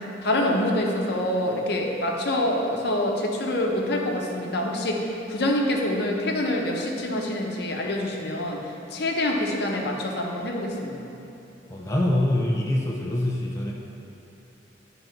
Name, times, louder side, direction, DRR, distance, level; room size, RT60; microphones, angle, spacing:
voice 1, 0.2-8.6 8.9-11.0, left 1 dB, 60° left, 0 dB, 0.9 m, -26 dB
voice 2, 11.7-13.7, left 1 dB, 15° left, -2 dB, 0.6 m, -24 dB
10.0 x 4.0 x 5.8 m, 2.8 s
head